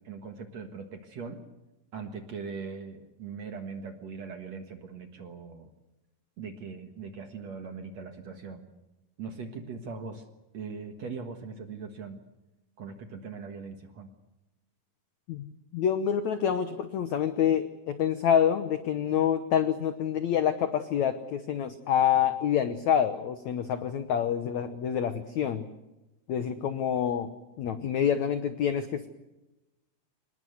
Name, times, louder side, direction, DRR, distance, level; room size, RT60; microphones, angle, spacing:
voice 1, 0.0-1.4 1.9-5.7 6.4-8.7 9.2-10.2 10.5-12.2 12.8-14.1, right 5 dB, 55° right, 6 dB, 2.1 m, -40 dB
voice 2, 15.3-25.6 26.3-27.3 27.6-29.1, left 9 dB, 75° left, 10 dB, 1.6 m, -27 dB
26.0 x 20.5 x 7.9 m, 0.98 s
omnidirectional pair, 4.7 m